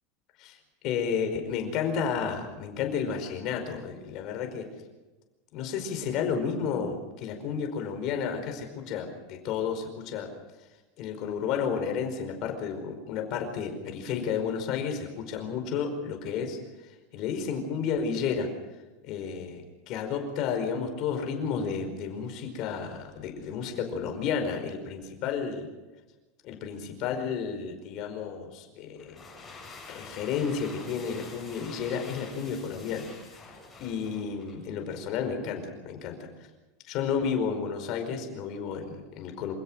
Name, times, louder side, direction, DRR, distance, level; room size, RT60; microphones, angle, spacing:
voice 1, 0.8-4.7 5.5-10.3 11.0-16.6 17.1-18.5 19.0-25.7 26.4-29.2 29.9-33.1 33.8-36.2 36.9-39.5, left 6 dB, 40° left, 5 dB, 5.0 m, -32 dB
sound 1, 29.0-34.7, left 3 dB, 10° left, 7.9 m, -47 dB
27.0 x 17.0 x 6.4 m, 1.1 s
supercardioid pair, 170°, 0 cm